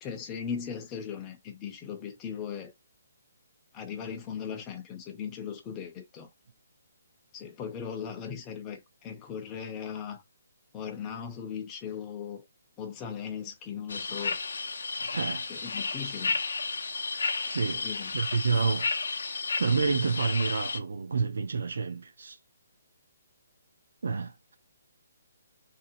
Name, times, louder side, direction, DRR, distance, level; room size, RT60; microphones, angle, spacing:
voice 1, 0.0-2.7 3.7-6.3 7.3-10.2 10.7-12.4 12.8-14.4 15.5-16.4 17.7-18.1, left 7 dB, 15° left, 0.5 m, -38 dB
sound 1, 13.9-20.8, left 4 dB, 80° left, 0.5 m, -32 dB
voice 2, 15.0-15.5 17.5-17.8 18.1-18.9 19.6-22.4 24.0-24.6, right 5 dB, 70° right, 0.4 m, -29 dB
2.7 x 2.1 x 2.6 m
hypercardioid pair, 170°, 0 cm